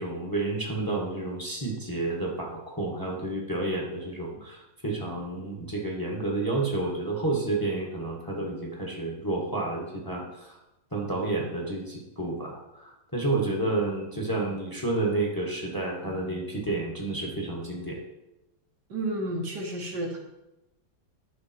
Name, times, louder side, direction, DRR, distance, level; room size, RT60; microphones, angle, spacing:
voice 1, 0.0-10.6 10.9-18.0, right 2 dB, 10° left, -1 dB, 1.7 m, -30 dB
voice 2, 18.9-20.2, right 1 dB, 65° right, 0 dB, 2.1 m, -32 dB
10.5 x 6.4 x 4.6 m, 0.93 s
omnidirectional pair, 2.0 m